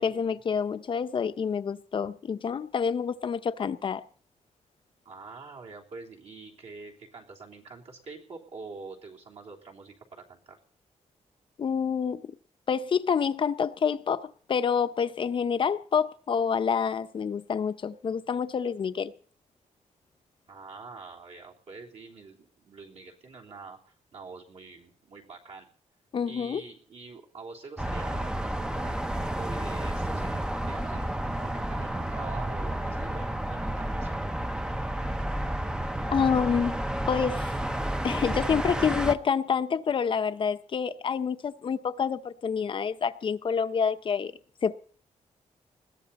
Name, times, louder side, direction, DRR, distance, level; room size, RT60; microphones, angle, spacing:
voice 1, 0.0-4.0 11.6-12.2 12.7-19.1 26.1-26.6 36.1-36.8 37.1-37.5 38.0-44.3 44.6-44.7, left 6 dB, 40° left, 0.7 m, -27 dB
voice 2, 5.1-10.6 20.5-25.7 26.2-34.1, right 4 dB, 60° right, 3.4 m, -45 dB
sound 1, 27.8-39.2, right 1 dB, 5° right, 0.7 m, -31 dB
20.5 x 15.5 x 4.2 m
wide cardioid pair, 170°, 13 cm